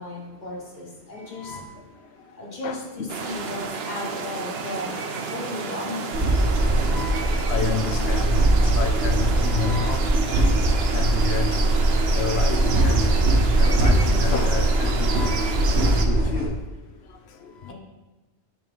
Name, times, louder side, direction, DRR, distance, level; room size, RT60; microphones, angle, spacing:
voice 1, 0.0-1.7 2.4-6.2 17.7-17.8, left 2 dB, 40° left, 1.4 m, -35 dB
voice 2, 2.6-3.1 6.9-10.4 10.9-11.6 12.1-13.1 13.6-15.6 16.1-16.5 17.6-17.7, left 5 dB, 70° left, 0.9 m, -30 dB
sound 1, 3.1-16.1, right 5 dB, 65° right, 0.9 m, -31 dB
sound 2, 6.1-16.5, right 1 dB, 85° right, 1.4 m, -21 dB
7.6 x 3.1 x 5.1 m
omnidirectional pair, 1.2 m